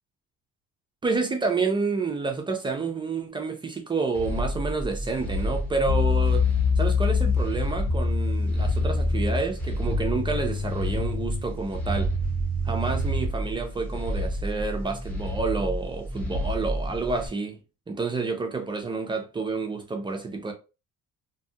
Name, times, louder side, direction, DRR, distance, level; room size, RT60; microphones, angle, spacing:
voice 1, 1.0-6.5 6.8-12.1 12.6-17.6 17.9-20.5, right 4 dB, 15° right, 0.4 m, -29 dB
sound 1, 4.1-17.3, equal, 5° left, 0.8 m, -31 dB
sound 2, 5.9-13.4, left 4 dB, 60° left, 0.9 m, -26 dB
2.6 x 2.3 x 2.7 m
cardioid pair, 150°, 29 cm